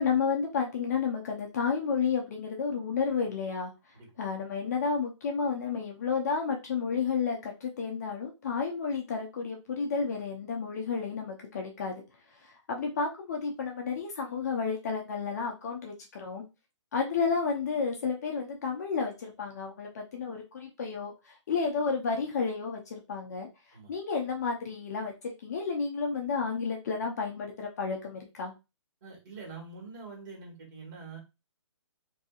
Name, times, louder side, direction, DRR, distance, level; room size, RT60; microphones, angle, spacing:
voice 1, 0.0-3.7 4.2-12.0 12.4-16.4 16.9-23.5 23.9-28.5, left 5 dB, 30° left, 1 dB, 0.5 m, -31 dB
voice 2, 29.0-31.2, right 4 dB, 40° right, -1 dB, 1.7 m, -45 dB
2.7 x 2.6 x 2.3 m, 0.26 s
hypercardioid pair, 160°, 16 cm